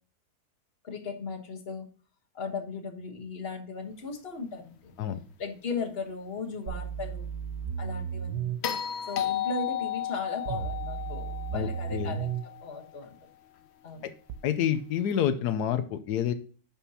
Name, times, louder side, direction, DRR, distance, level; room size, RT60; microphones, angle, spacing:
voice 1, 0.8-1.9 2.3-4.9 5.4-7.3 7.8-8.5 9.1-12.3 12.6-13.1 13.8-14.0, left 4 dB, 40° left, 4 dB, 1.4 m, -37 dB
sound 1, 6.7-8.6 10.5-12.5 14.3-14.4, right 8 dB, 80° right, 1.2 m, -34 dB
sound 2, 8.6-12.9 15.1-15.2, left 10 dB, 55° left, 0.7 m, -33 dB
voice 2, 11.5-12.2 14.0-14.1 14.4-16.3, left 9 dB, 85° left, 10 dB, 1.2 m, -28 dB
10.0 x 5.4 x 2.8 m, 0.40 s
omnidirectional pair, 1.7 m